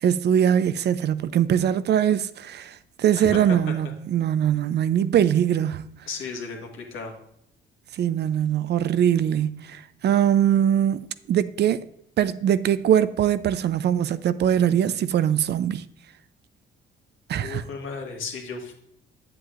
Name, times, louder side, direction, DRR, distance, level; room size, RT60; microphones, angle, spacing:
voice 1, 0.0-5.8 7.9-11.8 12.2-15.8 17.3-17.6, right 9 dB, 60° right, 0.5 m, -22 dB
voice 2, 3.2-3.6 6.1-7.1 17.4-18.7, left 4 dB, 80° left, 1.8 m, -34 dB
8.3 x 7.7 x 2.5 m
cardioid pair, 90°, 20 cm